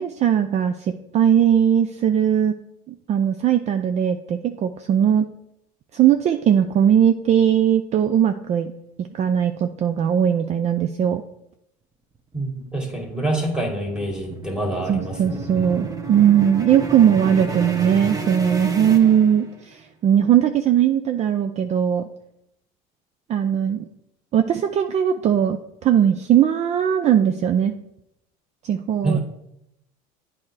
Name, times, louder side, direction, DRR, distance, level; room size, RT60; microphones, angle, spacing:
voice 1, 0.0-2.5 2.9-5.3 5.9-8.7 9.0-11.2 14.9-22.1 23.3-23.9 24.3-27.7 28.6-29.2, right 9 dB, 40° right, 8 dB, 0.4 m, -19 dB
voice 2, 12.3-15.7 29.0-29.2, right 2 dB, 5° right, 2 dB, 2.0 m, -26 dB
sound 1, 12.6-19.8, right 4 dB, 20° right, 1.0 m, -31 dB
8.6 x 4.3 x 4.7 m, 0.81 s
supercardioid pair, 95°, 18 cm